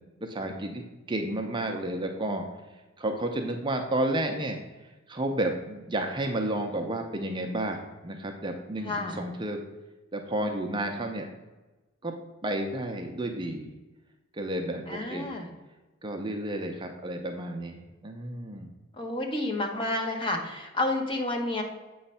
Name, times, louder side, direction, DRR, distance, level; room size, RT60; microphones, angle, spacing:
voice 1, 0.2-2.4 3.0-9.6 10.1-11.3 12.0-12.1 12.4-13.7 14.3-15.3 16.0-18.7, right 1 dB, 25° right, 3 dB, 0.5 m, -31 dB
voice 2, 8.8-9.2 14.9-15.5 19.0-21.6, left 2 dB, 25° left, 2 dB, 1.0 m, -30 dB
7.9 x 3.1 x 5.5 m, 1.1 s
head